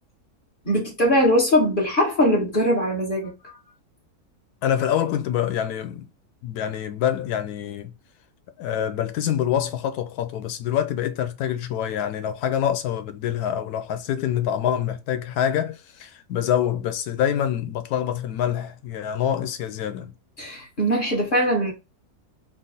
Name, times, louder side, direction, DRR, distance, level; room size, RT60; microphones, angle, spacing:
voice 1, 0.6-3.5 20.4-21.7, equal, 35° left, 1.3 m, -21 dB
voice 2, 4.6-6.1 6.4-7.9 8.6-20.1, left 10 dB, 85° left, 1.2 m, -26 dB
3.7 x 2.0 x 4.0 m
omnidirectional pair, 1.6 m